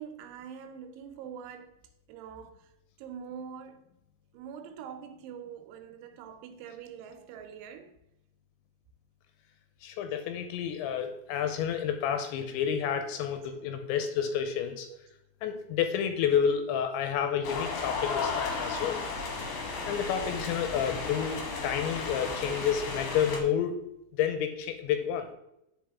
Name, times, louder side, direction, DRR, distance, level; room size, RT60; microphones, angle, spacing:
voice 1, 0.0-1.8 2.1-2.7 3.0-3.8 4.3-7.9 14.9-15.0 22.4-22.8, right 8 dB, 80° right, 3.1 m, -44 dB
voice 2, 9.8-14.9 15.4-19.0 19.9-23.8 24.1-25.3, left 8 dB, 85° left, 2.8 m, -30 dB
sound 1, 17.4-23.4, left 4 dB, 65° left, 2.3 m, -34 dB
10.5 x 5.1 x 3.5 m
omnidirectional pair, 5.6 m